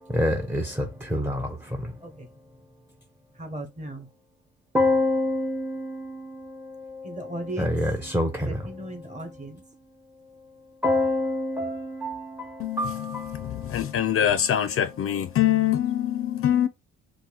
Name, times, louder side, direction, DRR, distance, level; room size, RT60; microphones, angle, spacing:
voice 1, 0.1-1.9 4.7-8.7 10.8-14.0, left 1 dB, 5° right, 0.6 m, -27 dB
voice 2, 3.4-4.1 7.0-7.8 8.4-9.6, right 1 dB, 25° right, 1.1 m, -37 dB
voice 3, 12.6-16.7, left 10 dB, 50° left, 0.4 m, -24 dB
2.9 x 2.5 x 3.8 m
cardioid pair, 90°, 30 cm